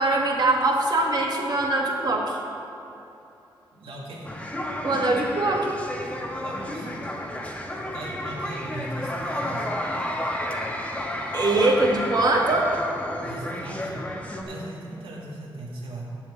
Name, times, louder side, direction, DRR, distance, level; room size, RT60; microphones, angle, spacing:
voice 1, 0.0-2.4 4.8-5.8 11.3-12.8, right 2 dB, 50° right, -1 dB, 2.0 m, -22 dB
voice 2, 3.7-4.3 6.4-6.9 7.9-9.7 13.2-14.0 14.4-16.2, right 1 dB, 85° right, -3 dB, 2.5 m, -38 dB
sound 1, 4.2-14.4, left 1 dB, 15° left, 1.5 m, -31 dB
8.4 x 7.2 x 8.3 m, 2.9 s
cardioid pair, 70°, 9 cm